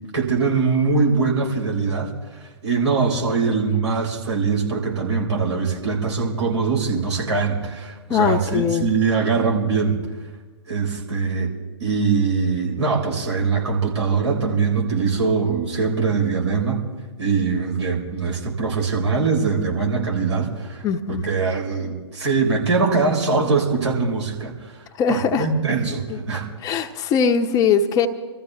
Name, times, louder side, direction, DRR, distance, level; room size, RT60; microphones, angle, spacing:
voice 1, 0.1-10.0 10.7-11.5 11.8-16.8 17.2-20.8 21.1-24.7 25.1-26.5, right 4 dB, 75° right, -1 dB, 4.7 m, -22 dB
voice 2, 8.1-8.9 20.8-21.2 25.0-25.5 26.1-26.2 26.6-28.1, left 6 dB, 25° left, 7 dB, 0.9 m, -21 dB
26.0 x 14.0 x 3.4 m, 1.2 s
figure-of-eight pair, 115°, 15 cm